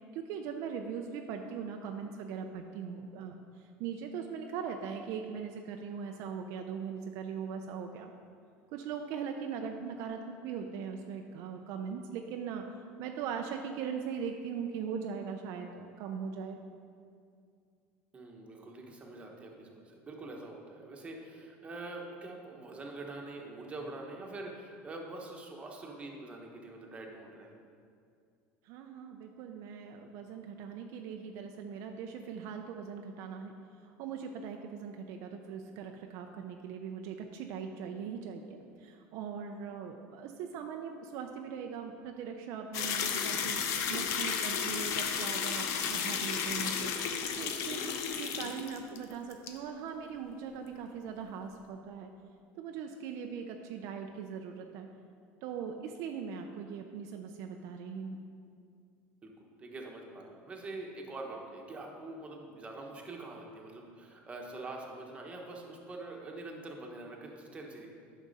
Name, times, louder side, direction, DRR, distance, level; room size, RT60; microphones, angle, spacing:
voice 1, 0.1-8.1 8.7-16.6 28.6-33.5 33.8-46.9 47.4-52.1 52.6-54.9 55.4-58.2, right 6 dB, 60° right, 4 dB, 0.5 m, -40 dB
voice 2, 18.1-27.6 59.2-59.3 59.6-67.9, right 2 dB, 20° right, 0 dB, 1.2 m, -44 dB
sound 1, 42.7-49.0 49.3-49.5, left 7 dB, 60° left, 0.7 m, -33 dB
9.7 x 6.2 x 4.1 m, 2.3 s
supercardioid pair, 135°, 6 cm